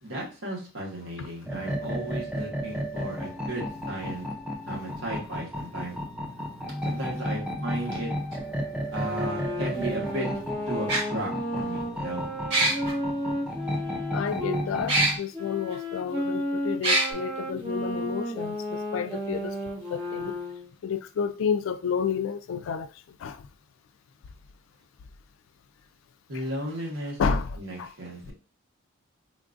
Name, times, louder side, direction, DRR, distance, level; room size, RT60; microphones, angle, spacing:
voice 1, 0.0-4.2 4.7-6.0 6.8-8.1 8.9-10.3 10.7-12.3 26.3-28.3, right 1 dB, 80° right, 1.2 m, -35 dB
sound 1, 1.4-15.2, equal, 5° right, 0.4 m, -33 dB
sound 2, 8.3-8.4 9.8-9.9 10.9-11.0 12.5-12.9 14.9-15.1 15.7-15.8 16.8-17.1, right 2 dB, 60° right, 1.3 m, -22 dB
sound 3, 8.9-14.6 15.3-20.7, equal, 25° right, 0.8 m, -33 dB
voice 2, 14.1-18.6 18.9-19.5 19.9-20.3 20.8-22.9 23.2-23.3 27.2-27.5, left 6 dB, 75° left, 0.3 m, -30 dB
3.7 x 2.4 x 2.5 m
head